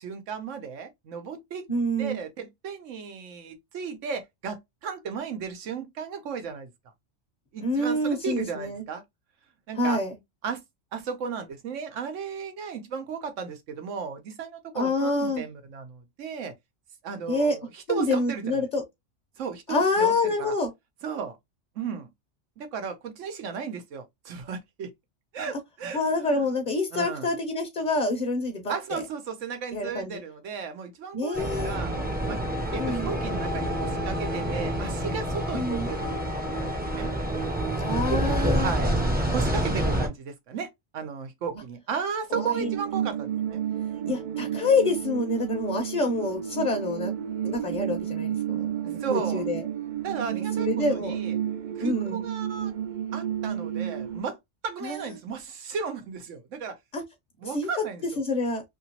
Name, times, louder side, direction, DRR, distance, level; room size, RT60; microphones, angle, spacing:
voice 1, 0.0-1.7 2.0-6.7 7.5-9.0 9.7-10.0 10.4-10.6 10.9-16.5 17.0-18.7 19.4-20.5 21.0-21.4 21.7-22.1 22.6-24.9 25.3-26.4 26.9-27.3 28.7-31.9 32.3-32.4 32.7-37.1 38.1-38.9 39.3-40.7 40.9-43.6 44.0-44.5 49.0-49.4 50.0-51.4 51.8-52.7 53.1-54.4 54.6-56.8 57.4-58.2, right 6 dB, 90° right, 1.1 m, -35 dB
voice 2, 1.7-2.2 7.6-8.8 9.7-10.2 14.7-15.4 17.3-17.6 17.9-18.8 19.7-20.7 25.9-29.0 29.7-30.2 31.1-31.8 32.8-33.1 35.5-35.9 37.8-38.7 42.3-42.7 44.1-47.1 47.4-49.6 50.3-51.2 51.8-52.2 54.8-55.1 56.9-57.0 57.4-57.7 58.2-58.6, left 2 dB, 45° left, 0.8 m, -27 dB
sound 1, 31.3-40.1, right 1 dB, 10° right, 0.5 m, -28 dB
sound 2, 42.3-54.2, right 9 dB, 55° right, 0.5 m, -31 dB
2.9 x 2.9 x 2.8 m
omnidirectional pair, 1.2 m